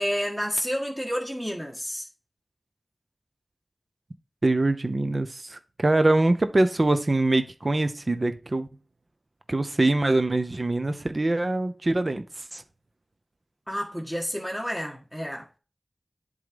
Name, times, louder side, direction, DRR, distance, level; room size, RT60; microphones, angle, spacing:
voice 1, 0.0-2.0 13.7-15.6, equal, 5° right, 1.6 m, -30 dB
voice 2, 4.4-8.7 9.5-12.6, right 2 dB, 50° right, 0.7 m, -24 dB
7.8 x 3.8 x 5.2 m
wide cardioid pair, 45°, 0 cm